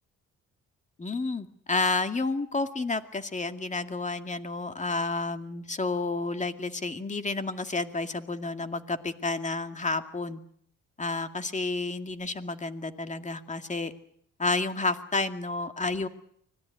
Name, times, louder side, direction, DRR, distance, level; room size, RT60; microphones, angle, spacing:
voice 1, 1.0-10.4 11.0-13.9 14.4-16.1, left 3 dB, 25° left, 8 dB, 2.2 m, -30 dB
25.0 x 18.5 x 9.4 m, 0.66 s
cardioid pair, 90°, 30 cm